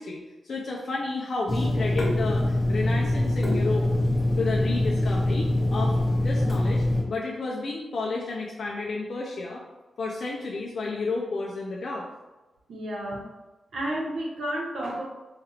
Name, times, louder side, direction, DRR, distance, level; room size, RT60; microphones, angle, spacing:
voice 1, 0.0-3.9 4.4-6.0 6.2-9.6 10.0-12.1, left 3 dB, 55° left, -3 dB, 0.4 m, -31 dB
Water tap faucet / Sink (filling or washing), 1.5-7.0, left 1 dB, 20° left, 1.0 m, -24 dB
voice 2, 12.7-13.3 13.7-15.0, right 1 dB, 80° right, -3 dB, 1.0 m, -31 dB
4.4 x 2.4 x 3.2 m, 1.1 s
wide cardioid pair, 160°, 0 cm